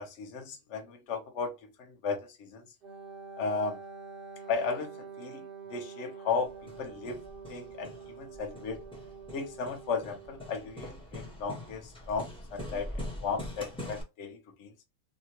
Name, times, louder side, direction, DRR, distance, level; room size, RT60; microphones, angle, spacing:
voice 1, 0.0-2.6 3.4-3.8 4.4-7.2 7.5-8.8 9.3-14.7, left 5 dB, 55° left, 1.0 m, -35 dB
Wind instrument woodwind instrument, 2.8-10.9, right 5 dB, 55° right, 0.6 m, -47 dB
Hammer, 6.5-14.0, left 1 dB, 5° left, 0.6 m, -43 dB
3.0 x 2.2 x 2.7 m
omnidirectional pair, 1.6 m